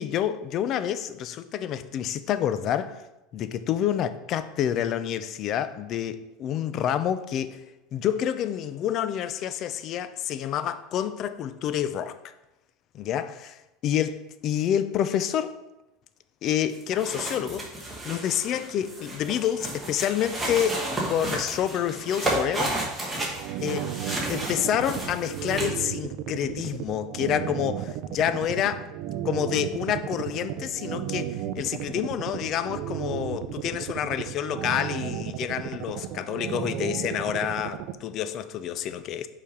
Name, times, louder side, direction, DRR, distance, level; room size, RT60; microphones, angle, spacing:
voice 1, 0.0-3.0 3.3-7.6 7.9-12.2 12.9-15.5 16.4-17.7 18.0-22.8 23.3-23.9 24.3-28.9 29.2-39.3, left 10 dB, 35° left, 0.4 m, -28 dB
sound 1, 16.7-25.8, right 1 dB, 5° right, 1.2 m, -32 dB
sound 2, 23.2-37.9, right 11 dB, 45° right, 0.4 m, -33 dB
5.5 x 5.0 x 5.1 m
cardioid pair, 175°, 0 cm